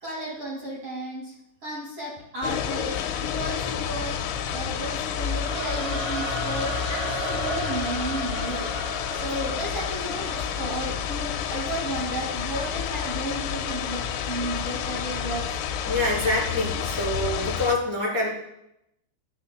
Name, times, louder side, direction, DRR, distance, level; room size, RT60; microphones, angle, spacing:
voice 1, 0.0-1.3 1.6-4.1 4.5-8.7 9.1-15.6, right 1 dB, 45° right, -4 dB, 2.1 m, -33 dB
sound 1, 2.4-17.8, left 8 dB, 90° left, 3.2 m, -30 dB
Singing / Musical instrument, 5.3-12.4, right 1 dB, 70° right, 5.4 m, -35 dB
voice 2, 15.8-18.3, left 2 dB, 20° right, -6 dB, 4.0 m, -26 dB
18.5 x 9.7 x 2.2 m, 0.83 s
omnidirectional pair, 5.8 m